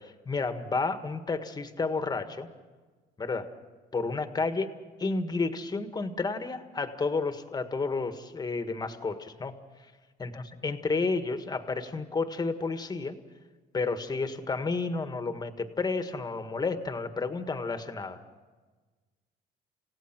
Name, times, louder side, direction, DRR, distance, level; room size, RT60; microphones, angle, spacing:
voice 1, 0.2-2.5 3.2-3.5 3.9-4.7 5.0-9.5 10.2-10.3 10.6-13.2 13.7-18.2, left 3 dB, 25° left, 8 dB, 1.7 m, -31 dB
29.5 x 16.5 x 6.1 m, 1.3 s
cardioid pair, 110°, 17 cm